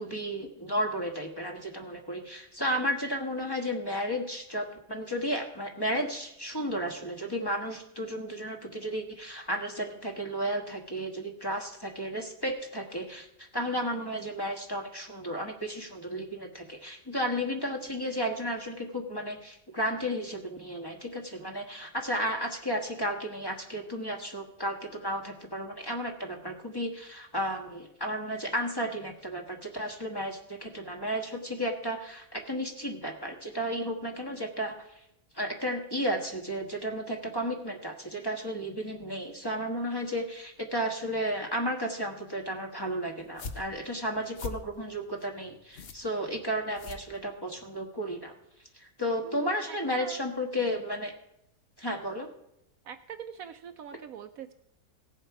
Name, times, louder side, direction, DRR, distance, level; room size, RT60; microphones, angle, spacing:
voice 1, 0.0-34.9 35.3-48.3 48.7-51.1 51.8-52.3, equal, 15° left, 1 dB, 1.4 m, -33 dB
sound 1, 43.2-47.7, left 3 dB, 45° left, 0.9 m, -43 dB
voice 2, 49.2-50.3 52.8-54.5, right 8 dB, 70° right, 9 dB, 1.0 m, -43 dB
17.5 x 7.3 x 4.8 m, 0.79 s
omnidirectional pair, 1.7 m